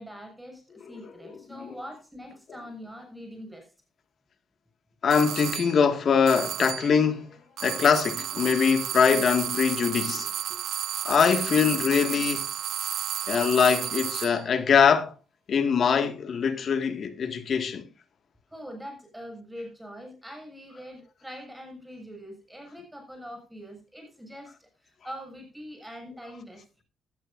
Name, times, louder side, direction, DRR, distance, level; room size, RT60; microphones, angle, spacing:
voice 1, 0.0-3.7 10.5-10.6 18.5-26.6, equal, 5° right, 6.6 m, -43 dB
voice 2, 0.9-1.7 5.0-10.3 11.0-12.4 13.3-15.1 15.5-17.9, left 6 dB, 60° left, 2.0 m, -23 dB
sound 1, 5.1-5.8 6.3-7.0 7.6-14.4, right 10 dB, 70° right, 0.6 m, -32 dB
16.5 x 12.5 x 2.6 m
supercardioid pair, 70°, 0 cm